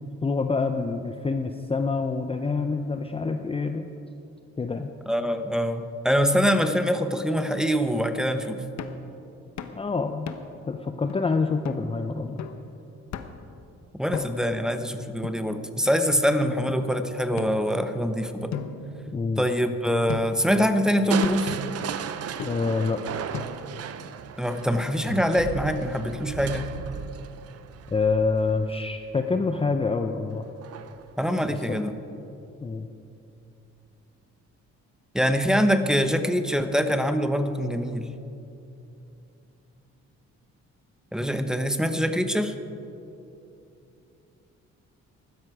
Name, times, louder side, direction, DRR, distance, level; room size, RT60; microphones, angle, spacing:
voice 1, 0.2-3.9 4.6-4.9 9.8-10.3 10.7-12.4 19.1-19.4 22.4-23.0 27.9-30.4 31.5-31.8 32.6-32.9, left 4 dB, 20° left, 6 dB, 0.6 m, -26 dB
voice 2, 5.1-8.6 14.0-18.5 19.4-21.6 24.4-26.7 31.2-31.9 35.1-38.1 41.1-42.5, equal, ahead, 8 dB, 0.9 m, -24 dB
sound 1, 8.8-9.1 9.6-9.8 10.3-10.6 11.1-11.2 11.6-11.9 12.4-12.7 13.1-13.5 14.1-14.6 15.2-15.9 16.7-16.8 17.4-18.1 18.5-19.6 20.1-20.5 21.2-21.6 22.4-22.8 23.3-23.8, left 7 dB, 65° left, 1.0 m, -37 dB
Crushing, 21.1-29.0 30.6-31.1 31.6-31.7, right 8 dB, 55° right, 0.7 m, -35 dB
15.0 x 12.5 x 4.9 m, 2.8 s
cardioid pair, 90°, 30 cm